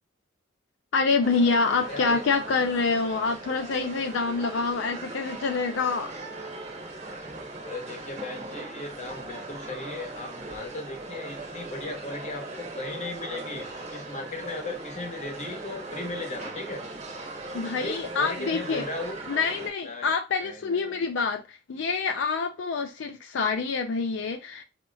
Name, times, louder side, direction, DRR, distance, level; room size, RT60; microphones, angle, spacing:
voice 1, 0.9-6.1 17.5-18.9 19.3-24.6, left 4 dB, 80° left, 0.4 m, -26 dB
sound 1, 1.2-19.7, right 2 dB, 35° right, 0.8 m, -39 dB
voice 2, 1.9-2.2 7.6-16.8 17.8-19.2 19.8-20.1 20.4-21.1, left 2 dB, 40° left, 1.0 m, -37 dB
4.2 x 2.7 x 2.3 m
head